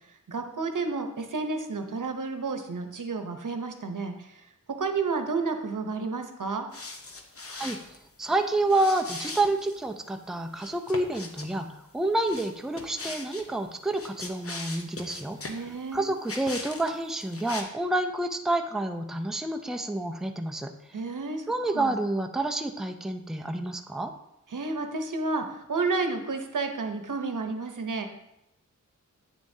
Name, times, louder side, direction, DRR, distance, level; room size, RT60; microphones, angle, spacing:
voice 1, 0.3-4.4 4.8-6.7 15.5-16.1 20.9-21.5 21.7-22.0 24.5-28.1, right 4 dB, 75° right, 6 dB, 0.8 m, -31 dB
sound 1, 6.7-8.0 8.7-9.8 10.5-11.5 12.3-13.5 13.9-15.6 16.3-16.9 17.2-17.6, left 3 dB, 45° left, 0.8 m, -39 dB
voice 2, 8.2-15.4 15.9-20.7 21.5-24.1, right 2 dB, ahead, 5 dB, 0.5 m, -28 dB
8.8 x 6.9 x 2.7 m, 0.86 s
wide cardioid pair, 65°, 31 cm